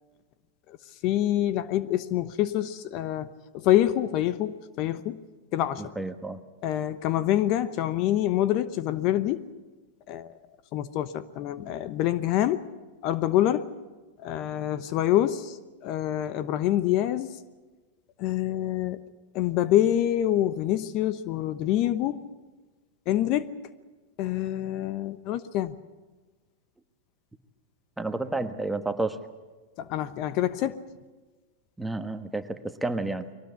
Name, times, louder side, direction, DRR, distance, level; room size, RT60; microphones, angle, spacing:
voice 1, 1.0-5.2 5.5-6.0 6.6-9.5 10.1-10.4 10.7-12.7 13.0-13.7 14.2-17.4 18.2-19.0 19.3-22.2 23.1-23.5 24.2-25.7 29.8-30.8, left 12 dB, 50° left, 14 dB, 1.0 m, -26 dB
voice 2, 5.8-6.4 28.0-29.2 31.8-33.3, right 2 dB, 5° right, 8 dB, 1.4 m, -31 dB
22.5 x 18.5 x 8.3 m, 1.3 s
hypercardioid pair, 110°, 0 cm